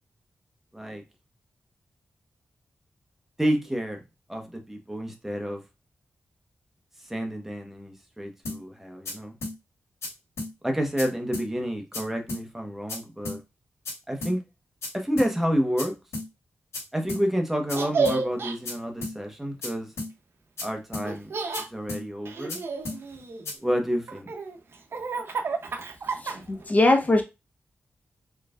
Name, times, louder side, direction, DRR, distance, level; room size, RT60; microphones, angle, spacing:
voice 1, 3.4-4.0 4.3-5.6 7.0-9.4 10.6-13.4 14.1-14.4 14.9-15.9 16.9-19.9 20.6-21.3 21.7-22.6 23.6-24.3, equal, 5° right, 1.1 m, -29 dB
sound 1, 8.5-8.6 9.1-9.2 9.4-9.6 10.0-10.1 10.4-10.5 11.0-11.1 11.3-11.5 11.9-12.0 12.3-12.4 12.9-13.0 13.3-13.4 13.9-14.0 14.2-14.4 14.8-14.9 15.2-15.3 15.8-15.9 16.1-16.3 16.7-16.8 17.1-17.2 17.7-17.8 18.1-18.2 18.7-18.8 19.0-19.2 19.6-19.7 20.0-20.1 20.6-20.7 20.9-21.1 21.5-21.6 21.9-22.0 22.5-22.6 22.9-23.0 23.5-23.6, left 2 dB, 85° left, 2.0 m, -33 dB
Laughter, 17.7-18.5 21.0-21.7 22.2-23.5 24.1-26.6, right 4 dB, 65° right, 0.7 m, -30 dB
voice 2, 26.2-27.2, left 2 dB, 35° left, 1.0 m, -21 dB
4.6 x 3.2 x 2.4 m
cardioid pair, 80°, 4 cm